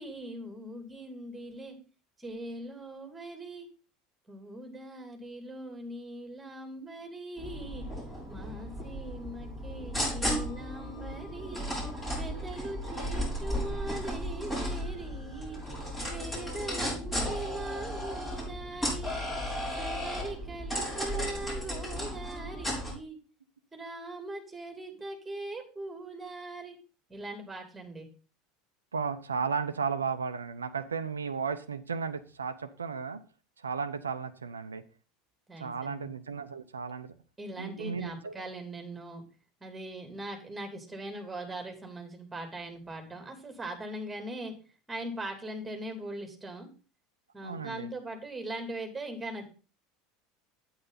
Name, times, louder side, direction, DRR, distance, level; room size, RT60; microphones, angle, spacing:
voice 1, 0.0-1.8 2.2-3.7 4.3-7.9 8.3-11.6 12.1-15.6 16.1-19.1 19.8-23.2 23.7-26.7 27.1-28.1 35.5-36.1 37.4-39.2 39.6-44.5 44.9-46.7 47.3-49.5, right 1 dB, 10° right, 5 dB, 3.1 m, -41 dB
sound 1, 7.4-22.9, equal, 20° left, 6.6 m, -35 dB
voice 2, 28.9-33.2 33.6-34.8 35.6-37.1 37.6-38.4 47.4-47.9, right 5 dB, 85° right, 11 dB, 0.6 m, -34 dB
8.8 x 8.7 x 4.0 m, 0.35 s
figure-of-eight pair, 75°, 0 cm